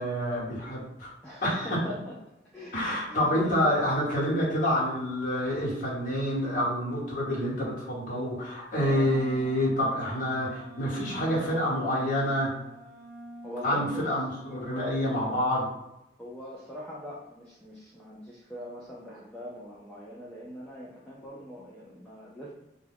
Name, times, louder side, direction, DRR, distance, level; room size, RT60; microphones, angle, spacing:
voice 1, 0.0-1.1 1.4-1.9 2.7-12.5 13.6-15.7, equal, 45° left, -7 dB, 1.1 m, -28 dB
voice 2, 1.2-2.1 2.5-3.7 8.8-9.1 13.4-14.1 14.5-15.0 16.2-22.5, equal, 5° left, -8 dB, 0.4 m, -41 dB
Wind instrument woodwind instrument, 8.7-14.8, right 1 dB, 85° right, 0.7 m, -46 dB
2.2 x 2.2 x 3.3 m, 0.91 s
head